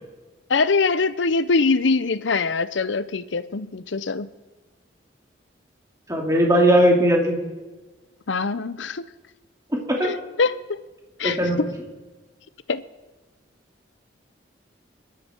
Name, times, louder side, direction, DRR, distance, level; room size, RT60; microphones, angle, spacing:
voice 1, 0.5-4.3 8.3-9.0 10.0-10.5 11.2-11.7 12.7-12.8, left 4 dB, 75° left, 15 dB, 0.7 m, -23 dB
voice 2, 6.1-7.4 9.9-10.1 11.2-11.6, right 1 dB, 15° right, -1 dB, 2.8 m, -18 dB
23.0 x 12.0 x 4.5 m, 1.2 s
head